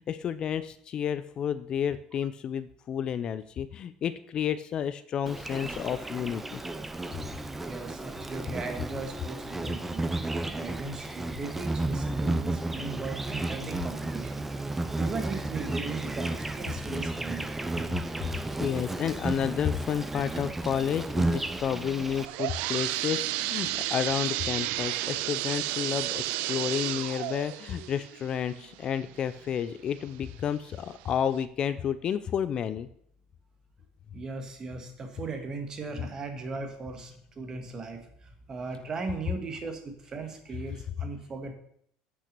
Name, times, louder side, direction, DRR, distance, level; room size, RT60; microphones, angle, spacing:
voice 1, 0.0-6.6 18.2-32.9, left 8 dB, 35° left, 13 dB, 0.4 m, -31 dB
Insect, 5.3-22.3, right 2 dB, 10° right, 0.6 m, -33 dB
voice 2, 7.6-10.1 10.5-14.5 15.0-17.7 34.1-41.5, right 3 dB, 25° right, 5 dB, 1.6 m, -38 dB
sound 1, 22.0-29.6 30.1-30.2 30.9-31.0 31.4-31.5, right 15 dB, 75° right, 0.5 m, -32 dB
sound 2, 28.4-40.8, left 4 dB, 50° right, 4.4 m, -67 dB
8.5 x 6.2 x 6.7 m, 0.67 s
cardioid pair, 145°, 2 cm